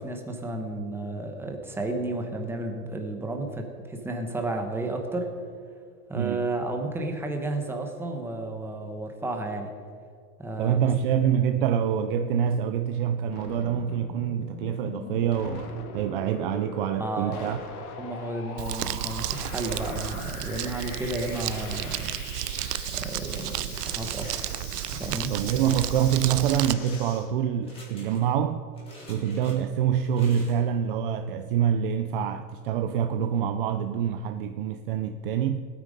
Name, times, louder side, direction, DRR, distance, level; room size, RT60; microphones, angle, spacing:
voice 1, 0.0-5.3 6.1-9.7 10.4-10.8 17.0-17.5 18.0-22.1 22.9-24.3 24.9-25.3, right 2 dB, 5° right, 0.9 m, -32 dB
voice 2, 10.6-17.6 25.3-28.6 29.1-35.7, right 9 dB, 40° right, 0.4 m, -26 dB
sound 1, 13.3-27.3, left 5 dB, 65° left, 2.5 m, -41 dB
Crumpling crinkling, 18.6-26.7, right 14 dB, 80° right, 0.7 m, -32 dB
sound 2, 20.7-21.9 22.3-23.2 23.7-24.6 25.1-26.0 26.4-27.0 27.6-28.3 28.7-29.6 30.0-30.6, left 1 dB, 10° left, 3.6 m, -48 dB
19.5 x 9.2 x 5.1 m
supercardioid pair, 160°, 47 cm